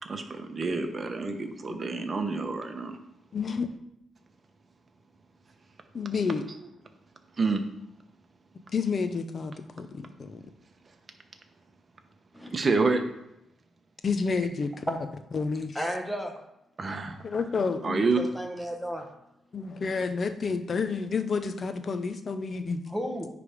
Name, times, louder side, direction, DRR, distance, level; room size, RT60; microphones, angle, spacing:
voice 1, 0.0-3.0 7.4-7.6 12.5-13.0 16.8-17.2 17.8-18.2, right 3 dB, 35° right, 5 dB, 0.9 m, -28 dB
voice 2, 1.7-2.0 3.3-3.7 5.9-6.5 8.7-10.4 14.0-15.0 15.3-15.8 17.2-18.1 19.5-22.8, left 5 dB, 40° left, 9 dB, 0.6 m, -30 dB
voice 3, 15.7-16.4 18.2-19.1 22.9-23.3, equal, 5° right, 3 dB, 1.0 m, -33 dB
9.6 x 3.4 x 5.1 m, 0.85 s
cardioid pair, 105°, 0 cm